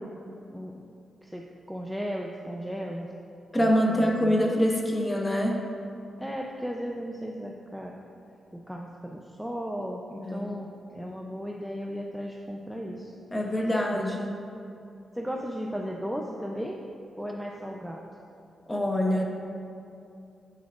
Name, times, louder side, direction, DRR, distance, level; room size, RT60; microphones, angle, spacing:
voice 1, 0.5-0.8 1.2-3.1 3.6-4.4 6.2-7.9 8.5-13.1 13.9-14.4 15.1-16.8 17.2-18.0, equal, 5° right, 0 dB, 0.5 m, -36 dB
voice 2, 3.5-5.6 10.2-10.5 13.3-14.3 18.7-19.2, equal, 15° left, 0 dB, 1.1 m, -25 dB
9.5 x 8.5 x 2.4 m, 2.6 s
cardioid pair, 95°, 0 cm